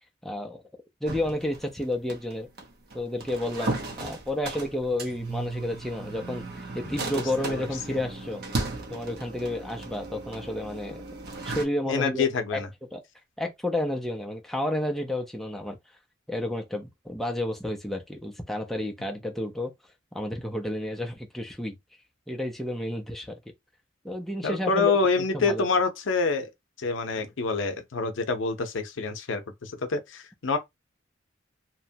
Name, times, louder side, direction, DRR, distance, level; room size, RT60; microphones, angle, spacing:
voice 1, 0.2-0.6 1.0-2.5 2.9-8.4 8.9-11.0 11.4-12.6 12.9-13.0 13.4-15.8 16.3-19.7 20.1-21.7 22.3-23.4 24.0-24.9 25.3-25.7, left 1 dB, ahead, 0.4 m, -31 dB
sound 1, 1.0-11.6, right 3 dB, 55° right, 0.7 m, -36 dB
voice 2, 11.9-12.7 24.4-26.5 26.8-30.6, left 4 dB, 75° left, 0.6 m, -26 dB
2.9 x 2.1 x 2.7 m
head